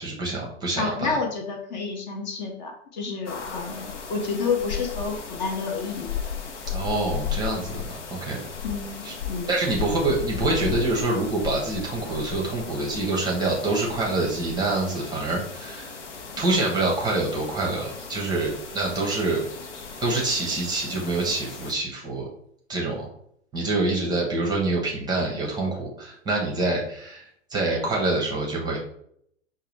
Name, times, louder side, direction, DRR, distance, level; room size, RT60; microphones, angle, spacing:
voice 1, 0.0-1.2 6.7-7.8 8.1-8.4 9.0-9.1 9.5-16.0 16.4-19.4 20.0-22.2 22.7-23.1 23.5-28.8, right 2 dB, 10° right, -1 dB, 0.7 m, -26 dB
voice 2, 0.8-6.1 8.6-9.0 9.3-9.5, left 4 dB, 35° left, 3 dB, 0.7 m, -29 dB
sound 1, 3.3-21.7, left 7 dB, 70° left, 0.8 m, -36 dB
5.7 x 2.2 x 3.2 m, 0.69 s
figure-of-eight pair, 105°, 38 cm